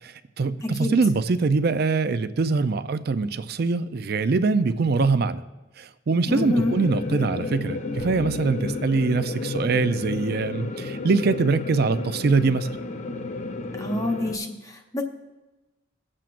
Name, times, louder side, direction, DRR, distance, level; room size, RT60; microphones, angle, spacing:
voice 1, 0.0-5.4 5.8-12.7, right 4 dB, 55° right, 11 dB, 0.5 m, -23 dB
voice 2, 0.6-0.9 6.3-6.8 13.8-15.0, left 1 dB, 15° left, 3 dB, 0.9 m, -27 dB
sound 1, 6.3-14.4, left 3 dB, 40° left, 0.6 m, -32 dB
sound 2, 8.0-10.0, left 2 dB, 60° left, 1.0 m, -46 dB
22.0 x 7.5 x 2.5 m, 1.1 s
head